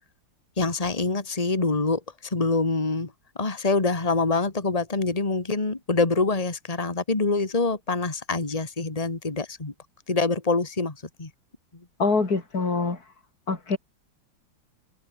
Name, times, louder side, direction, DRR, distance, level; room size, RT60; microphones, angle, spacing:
voice 1, 0.6-3.1 3.4-9.7 10.1-11.3, left 3 dB, 20° left, 2.4 m, -25 dB
voice 2, 12.0-13.0 13.5-13.8, left 4 dB, 55° left, 4.0 m, -24 dB
open air
omnidirectional pair, 2.0 m